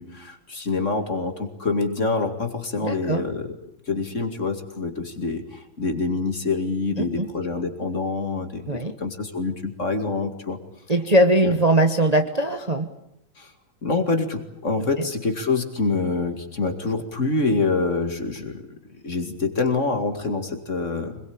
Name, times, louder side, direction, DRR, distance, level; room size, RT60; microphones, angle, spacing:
voice 1, 0.0-3.6 3.9-10.6 11.4-11.5 13.4-13.5 13.8-21.2, left 3 dB, 35° left, 6 dB, 2.6 m, -26 dB
voice 2, 2.8-3.2 7.0-7.3 8.7-8.9 10.9-12.9, right 1 dB, 20° right, 5 dB, 1.3 m, -20 dB
25.5 x 21.5 x 8.8 m, 0.77 s
omnidirectional pair, 2.2 m